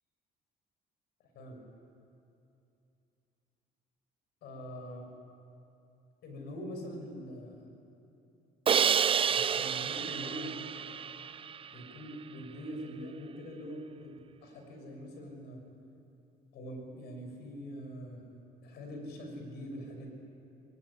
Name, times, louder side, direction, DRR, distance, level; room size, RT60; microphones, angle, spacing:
voice 1, 1.2-1.6 4.4-5.1 6.2-7.6 9.3-10.7 11.7-15.6 16.5-18.2 18.6-20.1, equal, 75° left, 3 dB, 6.3 m, -43 dB
Crash cymbal, 8.7-11.7, right 7 dB, 30° right, 0.5 m, -29 dB
22.5 x 19.0 x 9.9 m, 2.7 s
cardioid pair, 110°, 17 cm